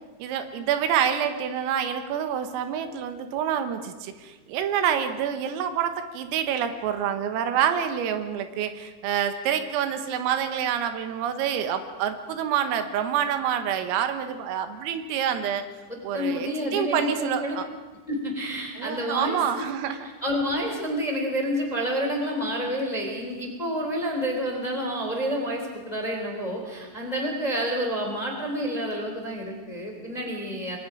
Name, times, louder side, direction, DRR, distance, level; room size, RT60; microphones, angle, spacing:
voice 1, 0.2-15.6 16.0-17.7 18.8-20.1, right 9 dB, 85° right, 8 dB, 3.9 m, -27 dB
voice 2, 15.9-17.5 18.1-19.4 20.2-30.8, equal, 10° left, 2 dB, 2.7 m, -29 dB
27.5 x 22.0 x 5.1 m, 1.2 s
omnidirectional pair, 6.0 m